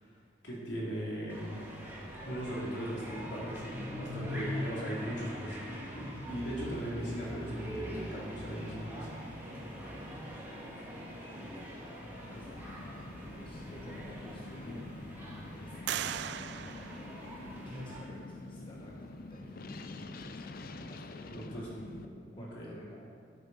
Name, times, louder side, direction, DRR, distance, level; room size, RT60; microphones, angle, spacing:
voice 1, 0.4-1.5 2.2-5.6 5.9-9.1 14.6-14.8 21.3-21.7 21.9-22.1 22.5-22.7, right 1 dB, 65° left, -5 dB, 3.2 m, -38 dB
sound 1, 1.3-18.0, equal, 10° right, 2.0 m, -43 dB
voice 2, 10.1-10.9 11.2-12.7 13.2-14.9 15.5-20.4 20.8-23.0, equal, 25° left, -3 dB, 1.2 m, -53 dB
sound 2, 12.2-22.1, left 2 dB, 50° left, 0.6 m, -46 dB
sound 3, 13.6-13.7 14.3-14.9 15.9-17.8, right 11 dB, 60° right, 0.3 m, -40 dB
12.5 x 7.2 x 5.5 m, 2.1 s
head